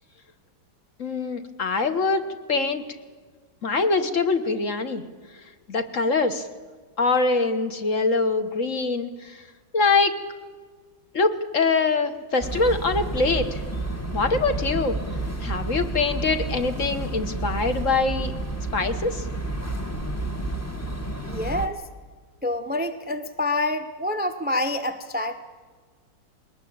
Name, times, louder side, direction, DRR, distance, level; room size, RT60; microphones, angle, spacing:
voice 1, 1.0-2.8 3.6-5.0 5.7-6.5 7.0-9.4 9.7-10.2 11.1-13.6 14.1-15.0 15.4-18.3 18.7-19.2, left 3 dB, 45° left, 9 dB, 1.4 m, -23 dB
sound 1, 12.4-21.7, right 2 dB, 10° left, 1.1 m, -30 dB
voice 2, 21.3-21.8 22.4-25.4, left 1 dB, 15° right, 9 dB, 0.4 m, -27 dB
21.0 x 19.5 x 8.7 m, 1.5 s
omnidirectional pair, 2.2 m